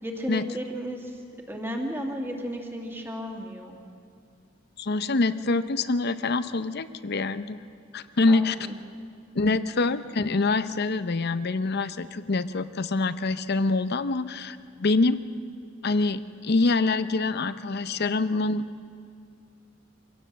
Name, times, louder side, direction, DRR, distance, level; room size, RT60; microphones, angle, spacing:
voice 1, 0.0-1.2 1.5-3.8 8.3-8.8, equal, 10° right, 1 dB, 2.3 m, -34 dB
voice 2, 4.8-7.6 7.9-8.6 9.3-15.2 15.8-18.6, left 3 dB, 55° left, 13 dB, 0.7 m, -25 dB
25.0 x 17.0 x 7.4 m, 2.3 s
head